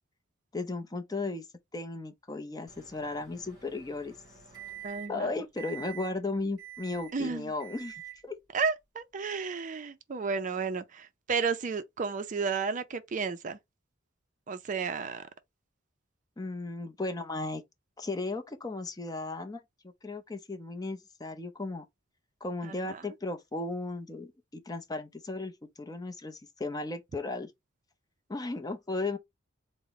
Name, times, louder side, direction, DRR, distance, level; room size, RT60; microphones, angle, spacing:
voice 1, 0.5-1.4 1.7-4.1 5.1-8.4 16.4-17.6 18.0-19.6 20.0-21.8 22.4-25.5 25.8-27.5 28.3-29.2, left 2 dB, 20° left, 0.5 m, -35 dB
Microwave oven, 2.7-5.2 5.6-6.1 6.6-7.2 7.6-8.2, right 11 dB, 20° right, 2.3 m, -47 dB
voice 2, 4.8-5.3 7.1-7.5 8.5-13.6 14.5-15.3 22.6-23.1, right 5 dB, 40° right, 0.4 m, -32 dB
4.0 x 2.0 x 3.9 m
head